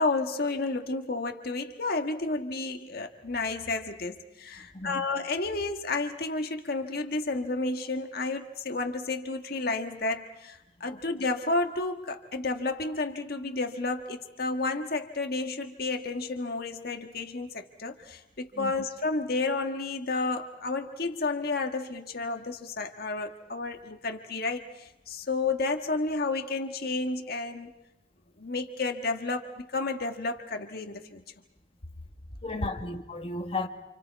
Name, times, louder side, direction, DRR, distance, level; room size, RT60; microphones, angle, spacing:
voice 1, 0.0-27.7 28.4-31.2, left 3 dB, 60° left, 1.6 m, -31 dB
voice 2, 32.4-33.7, left 2 dB, 35° left, 1.8 m, -34 dB
30.0 x 27.5 x 4.6 m
head